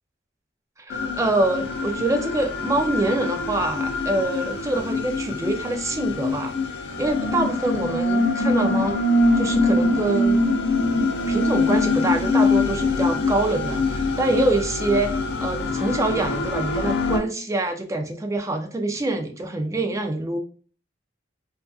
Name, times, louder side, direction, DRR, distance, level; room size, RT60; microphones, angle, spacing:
sound 1, 0.9-17.2, left 2 dB, 65° left, 0.3 m, -23 dB
voice 1, 0.9-6.5 7.0-9.0 9.4-10.4 11.3-20.4, right 2 dB, 15° right, 4 dB, 0.3 m, -25 dB
2.4 x 2.3 x 2.3 m, 0.40 s
head